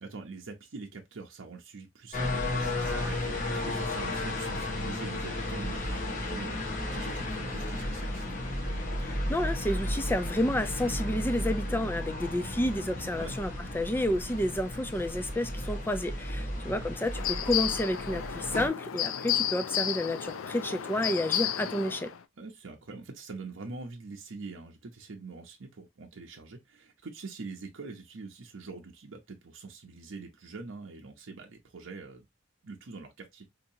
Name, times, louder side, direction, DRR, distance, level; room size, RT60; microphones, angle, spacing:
voice 1, 0.0-8.4 13.2-13.3 16.5-17.0 22.4-32.2 32.6-33.5, right 3 dB, 75° right, 0.7 m, -44 dB
sound 1, 2.1-18.7, left 1 dB, 40° left, 1.3 m, -34 dB
voice 2, 9.0-22.1, left 1 dB, 10° left, 0.4 m, -30 dB
sound 2, 17.1-22.2, left 10 dB, 85° left, 0.4 m, -32 dB
3.7 x 2.9 x 2.7 m
head